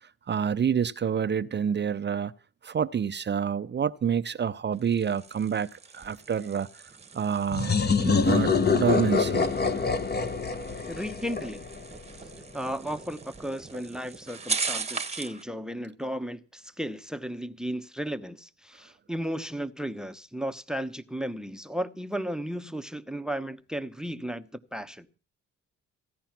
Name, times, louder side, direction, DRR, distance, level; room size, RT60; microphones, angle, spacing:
voice 1, 0.3-2.3 2.6-6.8 7.1-9.5, right 7 dB, 35° right, 0.6 m, -28 dB
sound 1, 4.7-15.4, right 4 dB, 20° right, 1.2 m, -39 dB
sound 2, 7.5-12.1, left 5 dB, 35° left, 1.3 m, -25 dB
voice 2, 10.9-11.7 12.5-25.1, equal, ahead, 0.9 m, -34 dB
16.5 x 10.5 x 5.9 m
cardioid pair, 90°, 30 cm